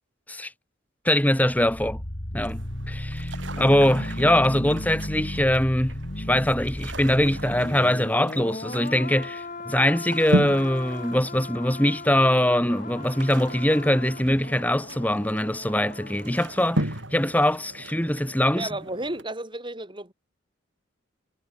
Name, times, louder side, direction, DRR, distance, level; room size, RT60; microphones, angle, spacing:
voice 1, 1.0-2.0 2.3-2.6 2.9-18.7, left 1 dB, 10° left, 3.3 m, -23 dB
sound 1, 1.3-16.3 16.6-16.7, left 1 dB, 40° left, 3.4 m, -36 dB
sound 2, 2.4-19.2, right 1 dB, 70° right, 7.0 m, -35 dB
voice 2, 18.5-20.1, right 2 dB, 25° right, 7.5 m, -33 dB
head